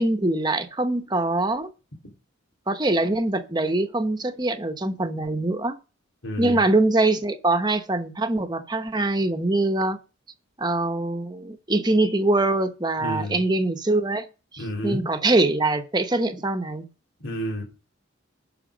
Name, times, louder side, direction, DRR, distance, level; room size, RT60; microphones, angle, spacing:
voice 1, 0.0-1.7 2.7-5.8 6.4-10.0 10.6-14.3 14.5-16.8, right 2 dB, 20° right, 0.9 m, -23 dB
voice 2, 6.2-6.6 13.0-13.4 14.6-15.1 17.2-17.6, equal, 85° left, 3.1 m, -30 dB
11.0 x 6.0 x 5.1 m
head